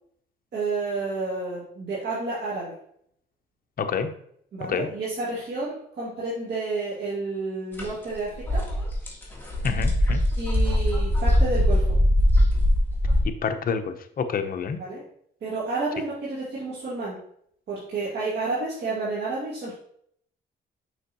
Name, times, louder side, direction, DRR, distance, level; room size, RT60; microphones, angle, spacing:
voice 1, 0.5-2.8 4.5-8.6 10.4-11.9 14.8-15.0 15.4-17.2 17.7-19.8, right 3 dB, 60° right, -7 dB, 2.1 m, -30 dB
voice 2, 3.8-4.1 4.7-4.9 9.6-10.2 13.2-14.8, left 6 dB, 45° left, 7 dB, 0.7 m, -28 dB
sound 1, 7.7-7.9 8.2-13.2, left 1 dB, 10° left, 1.8 m, -21 dB
6.4 x 5.3 x 2.9 m, 0.67 s
cardioid pair, 90°, 20 cm